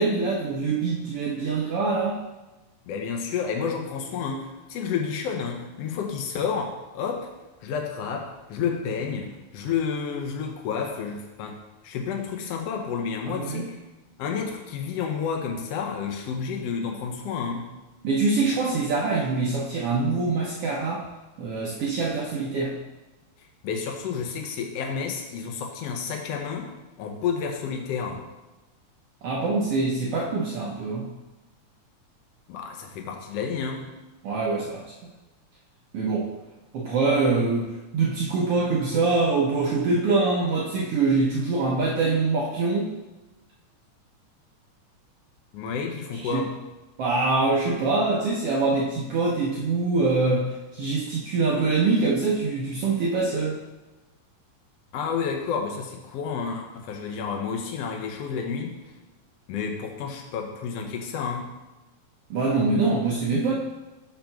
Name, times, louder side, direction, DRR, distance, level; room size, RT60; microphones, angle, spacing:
voice 1, 0.0-2.2 13.3-13.7 18.0-21.0 21.4-22.8 29.2-31.1 34.2-34.9 35.9-36.3 36.7-42.9 46.3-46.4 47.0-53.6 62.3-63.5, right 3 dB, 75° right, -3 dB, 1.4 m, -24 dB
voice 2, 2.9-7.3 7.6-11.6 11.8-13.8 14.2-17.7 23.6-28.2 32.5-33.8 45.5-46.5 54.9-58.8 59.5-61.5, left 6 dB, 70° left, 2 dB, 1.6 m, -30 dB
5.2 x 4.4 x 5.8 m, 1.1 s
omnidirectional pair, 3.5 m